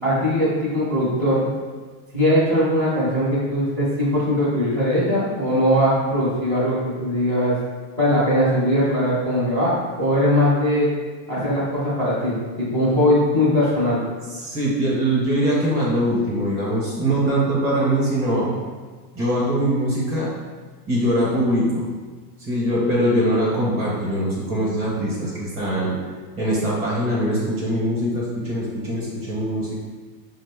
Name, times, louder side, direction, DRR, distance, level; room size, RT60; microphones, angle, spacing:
voice 1, 0.0-1.5 2.1-7.6 8.0-10.9 11.3-14.0, equal, 5° left, -13 dB, 0.6 m, -20 dB
voice 2, 14.3-18.5 19.1-20.3 20.9-21.8 22.4-26.0 26.4-29.8, right 1 dB, 25° right, -6 dB, 0.8 m, -22 dB
4.9 x 2.1 x 3.3 m, 1.4 s
supercardioid pair, 175°, 50 cm